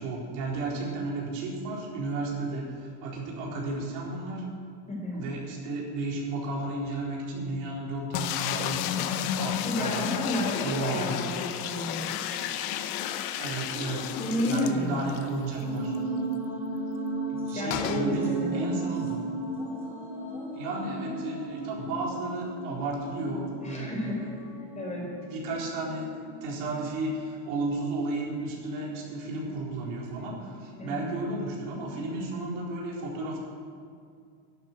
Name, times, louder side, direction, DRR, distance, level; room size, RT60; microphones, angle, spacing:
voice 1, 0.0-4.5 5.1-10.1 10.6-11.3 13.4-14.2 14.4-15.9 17.3-19.2 20.5-24.4 25.0-26.1 26.4-33.4, right 2 dB, 70° right, -3 dB, 4.2 m, -33 dB
voice 2, 4.9-5.3 9.6-12.4 14.2-15.1 17.5-18.8 23.6-24.2 24.7-25.1 30.8-31.1, left 1 dB, 15° left, -2 dB, 4.2 m, -31 dB
sound 1, 8.1-15.3 15.6-15.7 15.9-16.0 17.7-18.1, left 10 dB, 65° left, 1.0 m, -32 dB
sound 2, 15.6-27.0, right 2 dB, 5° right, 4.0 m, -35 dB
12.0 x 8.7 x 9.2 m, 2.3 s
cardioid pair, 145°, 41 cm